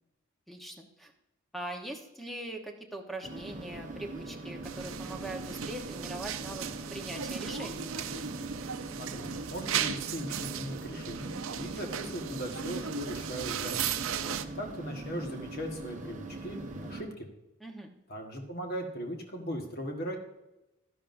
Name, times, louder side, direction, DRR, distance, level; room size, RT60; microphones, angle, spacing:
voice 1, 0.5-1.1 1.5-7.9 11.6-11.8 14.2-14.4 17.6-17.9, right 1 dB, ahead, 3 dB, 1.0 m, -42 dB
sound 1, 3.2-17.0, right 2 dB, 35° right, 1.0 m, -42 dB
sound 2, 4.6-14.4, right 8 dB, 75° right, 0.6 m, -36 dB
voice 2, 9.0-13.9 14.5-17.1 18.1-20.2, equal, 50° left, 3 dB, 1.4 m, -38 dB
12.5 x 10.5 x 2.6 m, 0.95 s
head